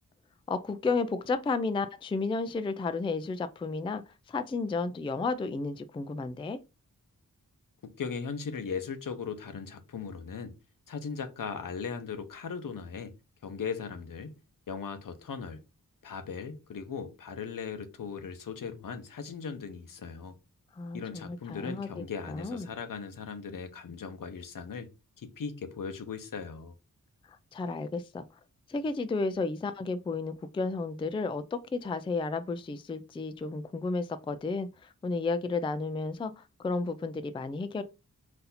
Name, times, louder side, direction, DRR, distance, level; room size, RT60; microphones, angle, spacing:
voice 1, 0.5-6.6 20.8-21.9 22.2-22.7 27.3-28.2 28.7-37.8, left 3 dB, 15° left, 0.3 m, -32 dB
voice 2, 7.8-10.5 10.9-13.1 13.4-14.4 14.7-15.6 16.0-20.4 20.9-24.9 25.2-26.7, left 6 dB, 70° left, 0.8 m, -38 dB
4.1 x 2.6 x 4.1 m
wide cardioid pair, 105°, 34 cm